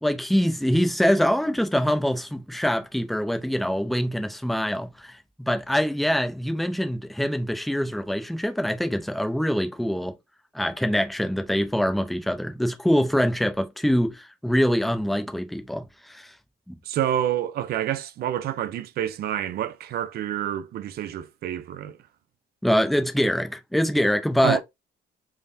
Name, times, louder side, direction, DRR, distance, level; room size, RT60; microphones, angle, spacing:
voice 1, 0.0-10.1 10.5-16.3 16.7-16.8 22.6-24.6, equal, ahead, 0.5 m, -24 dB
voice 2, 16.8-22.0 24.4-24.6, right 11 dB, 60° right, 0.5 m, -28 dB
3.5 x 2.1 x 2.6 m
cardioid pair, 110°, 18 cm